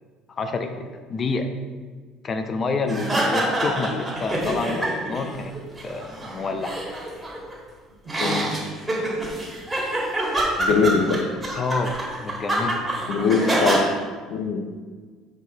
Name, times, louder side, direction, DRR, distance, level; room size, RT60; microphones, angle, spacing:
voice 1, 0.3-1.5 2.2-5.5 5.8-6.8 11.5-13.5, left 3 dB, 30° left, 7 dB, 0.7 m, -28 dB
sound 1, 2.9-5.2 5.5-7.5 8.0-13.8, right 1 dB, 10° right, 1.8 m, -26 dB
voice 2, 8.2-8.5 10.6-11.2 13.1-13.8 14.3-14.6, left 5 dB, 75° left, 5 dB, 0.8 m, -22 dB
6.7 x 4.6 x 4.1 m, 1.5 s
cardioid pair, 130°, 0 cm